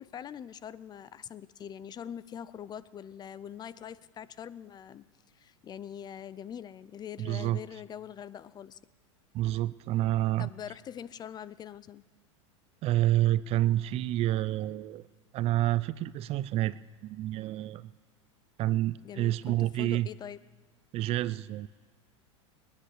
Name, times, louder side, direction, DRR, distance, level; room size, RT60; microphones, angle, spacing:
voice 1, 0.0-5.1 5.3-8.8 10.4-12.0 19.0-20.4, left 9 dB, 25° left, 18 dB, 0.5 m, -43 dB
voice 2, 7.2-7.6 9.3-10.5 12.8-15.1 15.3-17.9 18.6-20.1 20.9-21.7, right 14 dB, 40° right, 18 dB, 0.4 m, -28 dB
21.5 x 10.0 x 6.6 m, 1.4 s
hypercardioid pair, 110°, 16 cm